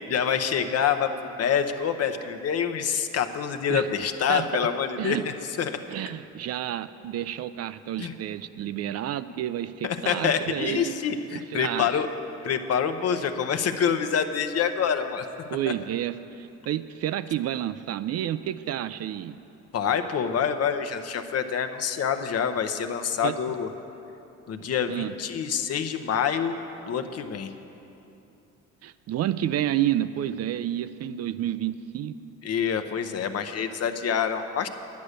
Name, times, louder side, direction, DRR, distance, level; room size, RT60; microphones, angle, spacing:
voice 1, 0.1-5.2 5.6-5.8 8.0-8.1 9.8-12.1 12.4-15.3 19.7-23.7 24.5-26.6 26.9-27.5 32.4-34.7, left 7 dB, 50° left, 8 dB, 0.8 m, -26 dB
voice 2, 5.9-11.0 11.3-12.0 15.5-19.4 23.2-23.3 24.9-25.1 28.8-32.2, right 12 dB, 55° right, 13 dB, 0.4 m, -30 dB
9.7 x 9.5 x 6.6 m, 2.8 s
supercardioid pair, 75°, 31 cm